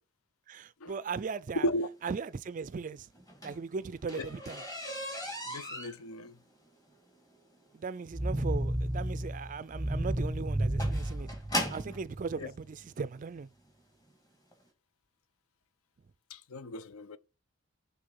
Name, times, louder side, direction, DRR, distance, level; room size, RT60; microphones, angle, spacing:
voice 1, 0.5-1.7 2.0-3.1 3.4-4.6 7.7-11.3 11.7-13.5, right 5 dB, 35° right, 0.3 m, -38 dB
sound 1, 3.1-12.0 12.9-13.0 13.6-13.8 14.1-14.2 14.5-14.6, equal, 15° left, 2.0 m, -39 dB
voice 2, 5.5-6.3 12.4-12.5 16.3-17.2, equal, 75° left, 0.6 m, -35 dB
sound 2, 8.1-12.2, right 1 dB, 5° right, 0.8 m, -32 dB
6.7 x 3.7 x 5.4 m
head